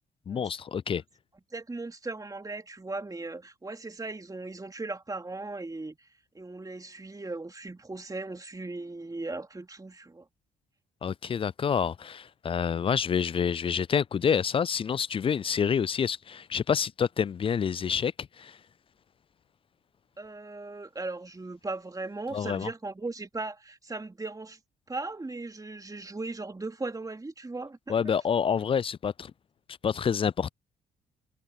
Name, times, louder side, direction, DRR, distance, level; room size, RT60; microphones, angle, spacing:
voice 1, 0.3-1.0 11.0-18.6 22.3-22.7 27.9-29.3 29.8-30.5, left 7 dB, 30° left, 0.4 m, -28 dB
voice 2, 1.5-6.1 6.3-10.3 20.2-24.6 24.9-27.9, right 3 dB, 20° right, 2.6 m, -38 dB
hypercardioid pair, 45°, 19 cm